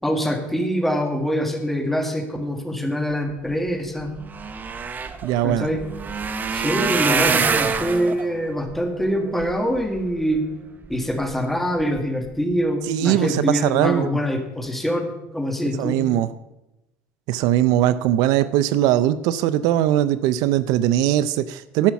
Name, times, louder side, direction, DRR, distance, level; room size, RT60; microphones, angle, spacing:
voice 1, 0.0-4.1 5.4-5.8 6.5-10.4 10.9-16.0, equal, 5° left, 4 dB, 1.8 m, -24 dB
sound 1, 3.7-3.8 4.0-10.4 10.9-11.4 11.8-12.0 12.3-12.4, right 5 dB, 25° right, 0.8 m, -26 dB
voice 2, 5.2-5.7 12.9-14.1 15.8-16.3 17.3-21.9, right 12 dB, 75° right, 14 dB, 0.5 m, -20 dB
11.5 x 5.8 x 7.0 m, 0.94 s
cardioid pair, 125°, 7 cm